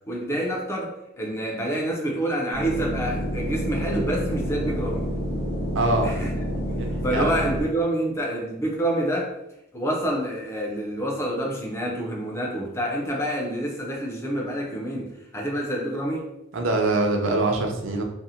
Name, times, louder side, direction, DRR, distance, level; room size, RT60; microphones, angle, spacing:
voice 1, 0.1-5.1 6.0-6.4 6.8-9.4 9.7-16.3, right 1 dB, 15° left, -1 dB, 0.4 m, -27 dB
sound 1, 2.5-7.6, equal, 50° left, 0.7 m, -28 dB
voice 2, 5.7-6.1 6.8-7.3 16.5-18.0, right 2 dB, 85° right, 2 dB, 0.5 m, -24 dB
2.5 x 2.0 x 2.7 m, 0.83 s
head